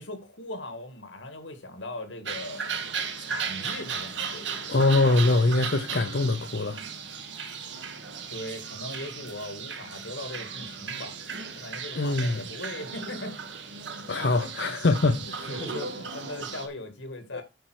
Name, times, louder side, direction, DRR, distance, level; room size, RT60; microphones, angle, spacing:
voice 1, 0.0-2.8 3.2-4.7 8.3-13.4 13.9-14.5 14.8-17.4, left 1 dB, 85° left, 2.0 m, -39 dB
sound 1, 2.2-16.7, right 6 dB, 75° right, 1.7 m, -36 dB
voice 2, 4.7-6.8 12.0-12.4 14.1-15.5 17.3-17.4, left 2 dB, 65° left, 0.7 m, -23 dB
9.3 x 4.5 x 6.2 m
head